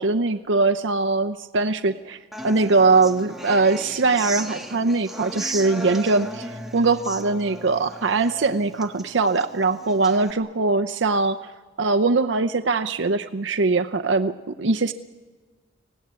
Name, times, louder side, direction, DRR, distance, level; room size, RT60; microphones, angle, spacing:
voice 1, 0.0-2.2 2.4-11.4 11.8-14.9, right 3 dB, 80° right, 8 dB, 0.7 m, -21 dB
Human voice / Acoustic guitar, 2.3-10.3, right 1 dB, ahead, 1.4 m, -36 dB
24.5 x 17.5 x 9.6 m, 1.4 s
head